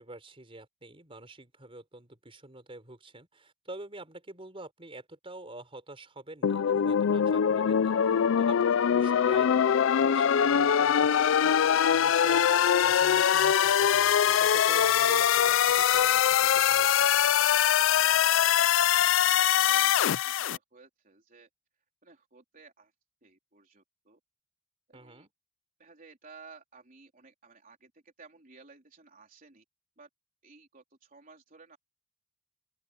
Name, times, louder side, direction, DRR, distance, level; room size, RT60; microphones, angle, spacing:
voice 1, 0.0-17.2 24.9-25.3, right 2 dB, 30° right, 4.6 m, -46 dB
sound 1, 6.4-20.6, left 9 dB, 85° left, 0.4 m, -23 dB
voice 2, 19.6-21.5 22.0-22.9 23.2-24.2 24.9-25.3 25.8-29.6 30.0-30.1 30.4-31.8, right 4 dB, 45° right, 3.7 m, -55 dB
open air
head